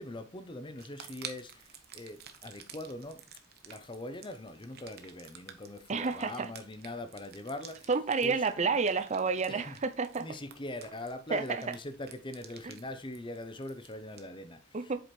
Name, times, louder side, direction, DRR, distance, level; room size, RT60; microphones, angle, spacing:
voice 1, 0.0-3.2 3.6-7.9 8.2-8.7 9.5-9.8 10.2-15.0, left 1 dB, 25° left, 0.7 m, -42 dB
sound 1, 0.8-14.2, right 8 dB, 50° right, 1.0 m, -52 dB
voice 2, 5.9-6.5 7.9-10.3 11.3-11.6 12.6-12.8 14.7-15.0, right 4 dB, 35° right, 0.5 m, -30 dB
7.9 x 5.0 x 4.3 m
head